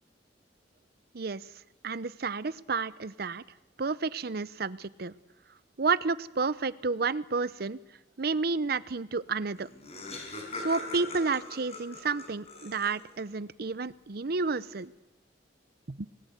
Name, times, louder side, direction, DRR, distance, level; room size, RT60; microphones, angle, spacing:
voice 1, 1.1-1.4 1.8-3.4 3.8-5.1 5.8-7.8 8.2-9.7 10.5-14.9 16.0-16.1, right 4 dB, 60° right, 17 dB, 0.8 m, -31 dB
Laughter, 9.3-9.4 9.5-13.2, left 2 dB, 40° left, 6.1 m, -41 dB
27.0 x 20.0 x 8.1 m, 1.1 s
head